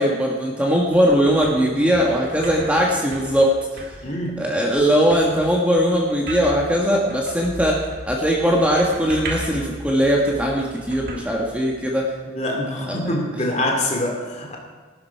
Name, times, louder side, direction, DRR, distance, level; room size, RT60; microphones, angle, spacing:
voice 1, 0.0-3.5 4.4-12.1 12.9-13.0, equal, 5° right, -2 dB, 1.5 m, -20 dB
sound 1, 0.6-12.1, right 1 dB, 50° right, 1.9 m, -37 dB
voice 2, 4.0-4.5 12.3-14.6, left 1 dB, 35° left, 1 dB, 2.6 m, -25 dB
15.5 x 12.5 x 4.7 m, 1.5 s
head